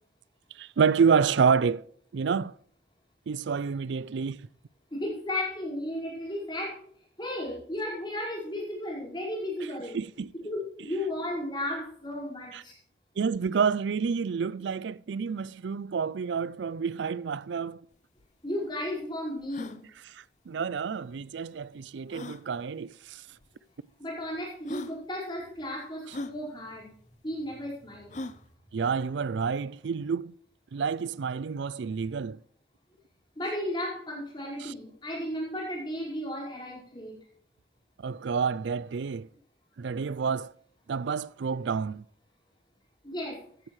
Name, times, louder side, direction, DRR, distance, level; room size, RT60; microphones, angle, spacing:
voice 1, 0.5-1.8 2.1-2.5 3.3-4.5 9.9-10.3 12.5-12.6 13.2-17.8 20.0-23.3 28.7-30.3 30.7-32.4 34.6-34.7 38.0-39.3 39.8-40.5 40.9-42.0, right 6 dB, 75° right, 0.4 m, -28 dB
voice 2, 4.9-6.8 7.2-10.0 10.4-12.7 18.4-19.8 24.0-26.9 27.2-28.2 33.4-37.1 43.0-43.4, left 1 dB, 25° left, 5.0 m, -34 dB
sound 1, 17.9-18.0 18.2-18.3 18.8-18.9 19.4-19.8 21.1-21.2 22.1-22.4 23.4-23.5 24.2-24.3 24.7-25.0 26.1-26.4 28.1-28.4, left 2 dB, 40° left, 0.6 m, -38 dB
14.5 x 11.0 x 3.2 m
head